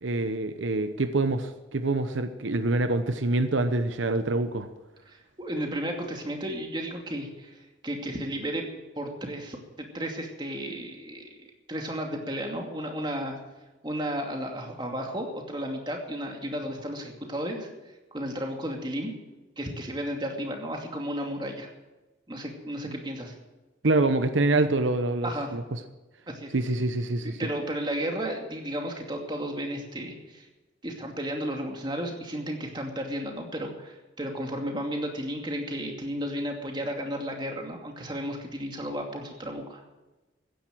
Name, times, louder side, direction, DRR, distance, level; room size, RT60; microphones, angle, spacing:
voice 1, 0.0-4.7 22.9-23.0 23.8-25.6 26.5-27.4, right 2 dB, 85° right, 10 dB, 0.9 m, -26 dB
voice 2, 5.1-7.6 7.8-8.7 9.0-11.3 11.7-13.4 13.8-17.7 18.1-19.1 19.6-21.7 22.3-23.4 25.2-25.5 26.3-26.5 27.2-30.5 30.8-39.8, equal, 25° right, 2 dB, 2.6 m, -33 dB
15.0 x 10.5 x 7.7 m, 1.1 s
head